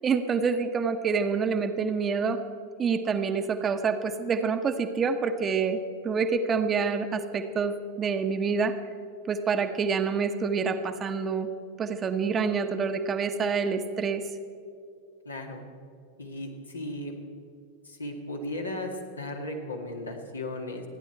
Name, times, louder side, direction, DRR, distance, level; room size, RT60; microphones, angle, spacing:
voice 1, 0.0-2.4 2.8-8.8 9.3-11.5 11.8-14.2, right 5 dB, 25° right, 8 dB, 1.1 m, -27 dB
voice 2, 15.3-15.6 16.2-17.1 17.9-20.8, left 1 dB, 80° left, 1 dB, 2.2 m, -36 dB
29.0 x 10.5 x 4.5 m, 2.4 s
figure-of-eight pair, 90°, 0 cm